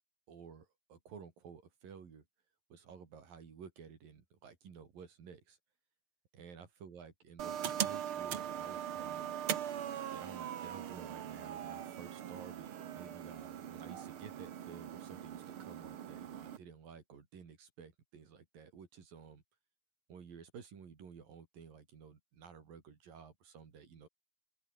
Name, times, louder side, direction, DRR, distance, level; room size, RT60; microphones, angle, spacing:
voice 1, 0.3-2.3 2.7-5.6 6.3-9.3 10.1-19.4 20.1-24.1, right 6 dB, 60° right, 5.3 m, -53 dB
sound 1, 7.4-16.6, right 10 dB, 80° right, 1.2 m, -41 dB
open air
omnidirectional pair, 4.5 m